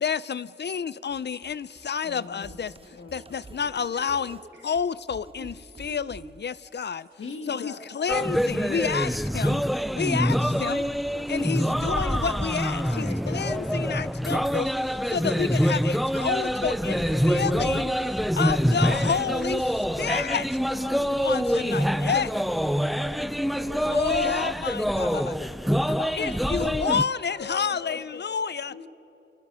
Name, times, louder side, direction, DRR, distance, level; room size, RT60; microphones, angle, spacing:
voice 1, 0.0-2.7 3.1-4.4 4.6-7.1 7.5-9.6 9.9-10.9 11.3-17.9 18.4-20.5 21.2-22.3 23.9-25.6 26.1-28.7, left 6 dB, 60° left, 0.5 m, -29 dB
sound 1, 1.1-6.4, right 3 dB, 30° right, 0.8 m, -48 dB
voice 2, 2.0-3.2 7.2-7.9 10.1-10.4 11.1-11.8 12.6-13.8 14.1-14.2 16.5-17.5 18.4-19.5 20.7-22.1 23.5-24.1 25.8-26.8 27.3-28.4 28.7-28.9, left 4 dB, 85° left, 1.9 m, -43 dB
voice 3, 3.9-4.2 4.5-4.7 7.5-7.8 16.8-17.5 22.5-24.1 25.6-26.8 27.1-27.4, right 2 dB, 70° right, 5.0 m, -51 dB
sound 2, 8.1-27.0, equal, ahead, 0.4 m, -25 dB
28.0 x 26.5 x 5.6 m
wide cardioid pair, 85°, 20 cm